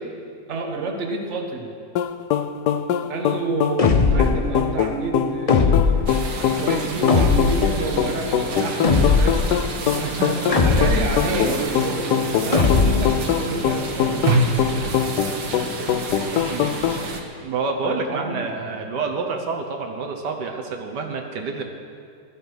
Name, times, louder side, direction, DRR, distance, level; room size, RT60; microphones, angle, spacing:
voice 1, 0.5-1.7 3.1-6.1 6.4-9.4 10.2-14.5 17.8-18.9, right 3 dB, 45° right, 3 dB, 1.6 m, -29 dB
sound 1, 2.0-17.1, left 9 dB, 75° left, 1.2 m, -23 dB
sound 2, 3.8-4.4 5.5-6.2 7.1-7.7 8.8-9.5 10.5-11.2 12.5-13.2, left 4 dB, 55° left, 0.4 m, -18 dB
sound 3, 6.1-17.2, right 3 dB, 90° right, 2.1 m, -28 dB
voice 2, 10.0-10.6 16.4-16.7 17.4-21.6, right 4 dB, 70° right, 2 dB, 1.6 m, -28 dB
16.0 x 12.0 x 6.3 m, 2.4 s
omnidirectional pair, 1.9 m